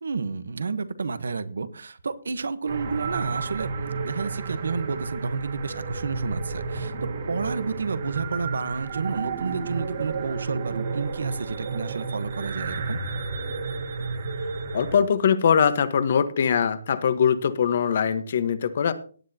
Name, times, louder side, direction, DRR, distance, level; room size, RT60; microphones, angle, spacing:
voice 1, 0.0-13.0, right 4 dB, 75° right, 14 dB, 1.2 m, -31 dB
sound 1, 2.7-15.0, right 4 dB, 45° right, 2.1 m, -32 dB
voice 2, 14.7-18.9, left 7 dB, 50° left, 12 dB, 1.3 m, -22 dB
18.0 x 9.0 x 2.9 m, 0.42 s
hypercardioid pair, 160°, 0 cm